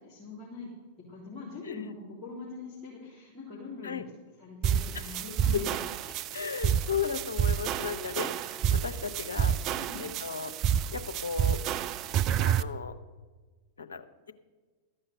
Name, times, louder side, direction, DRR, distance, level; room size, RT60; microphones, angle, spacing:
voice 1, 0.0-0.7 1.0-4.1 4.4-5.8 6.1-6.3 7.9-8.8 9.7-10.1, left 4 dB, 25° left, -7 dB, 3.5 m, -43 dB
sound 1, 4.6-12.6, right 9 dB, 40° right, 0.4 m, -29 dB
voice 2, 6.3-9.5 10.0-10.5 10.9-11.6 12.4-12.9 13.8-14.3, left 6 dB, 70° left, 8 dB, 0.8 m, -35 dB
13.5 x 5.7 x 7.8 m, 1.3 s
figure-of-eight pair, 95°, 0 cm